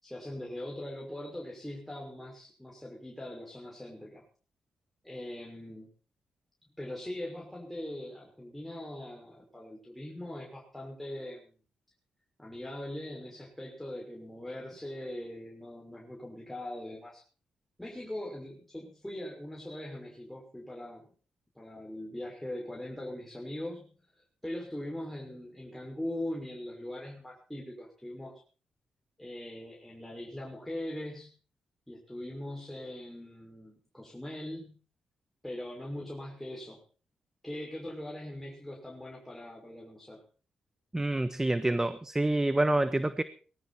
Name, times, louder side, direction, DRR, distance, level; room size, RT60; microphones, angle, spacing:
voice 1, 0.0-4.2 5.0-5.9 6.7-11.5 12.4-17.2 17.8-21.1 21.6-23.9 24.2-28.3 29.2-31.3 31.9-34.8 35.4-36.8 37.4-40.2, left 1 dB, 5° left, -2 dB, 5.9 m, -41 dB
voice 2, 40.9-43.2, right 1 dB, 20° right, 12 dB, 1.3 m, -27 dB
20.5 x 13.0 x 4.4 m, 0.38 s
supercardioid pair, 45°, 3 cm